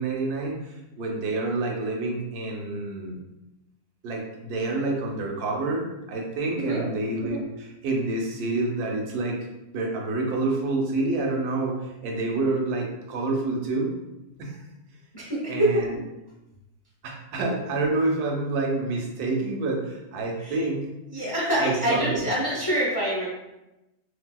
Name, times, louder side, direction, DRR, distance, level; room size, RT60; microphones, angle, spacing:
voice 1, 0.0-3.2 4.0-9.4 9.7-13.9 14.4-14.6 15.5-15.9 17.0-20.9 21.6-22.2, right 2 dB, 85° right, 0 dB, 1.2 m, -28 dB
voice 2, 15.1-15.9 20.4-20.6 21.1-23.3, right 1 dB, 25° left, -6 dB, 0.5 m, -25 dB
3.3 x 2.7 x 2.2 m, 0.96 s
omnidirectional pair, 1.6 m